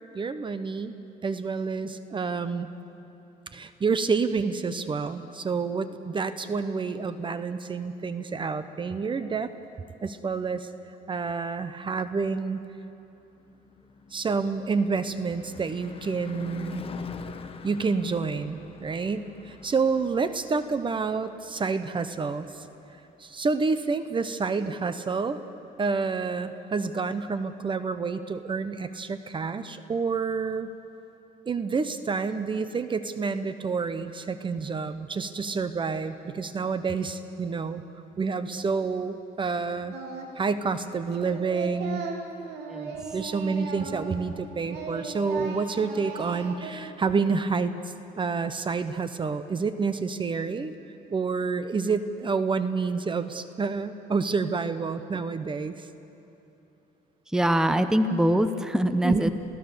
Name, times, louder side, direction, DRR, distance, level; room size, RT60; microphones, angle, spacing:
voice 1, 0.1-0.9 1.2-2.7 3.5-9.5 10.0-10.7 11.1-12.6 14.1-16.9 17.6-22.7 23.2-25.4 25.8-30.7 31.5-37.8 38.2-39.9 40.4-42.0 43.1-50.7 51.1-55.9 59.0-59.3, right 4 dB, 30° right, 11 dB, 0.9 m, -28 dB
Car passing by / Truck / Engine, 12.8-23.0, left 5 dB, 35° left, 1.2 m, -44 dB
Singing, 39.9-40.5 40.7-44.4 44.7-46.7, right 4 dB, 85° right, 2.5 m, -37 dB
voice 2, 42.7-43.1 57.3-59.3, right 1 dB, 5° right, 10 dB, 0.8 m, -23 dB
28.5 x 16.5 x 6.8 m, 2.9 s
cardioid pair, 110°, 17 cm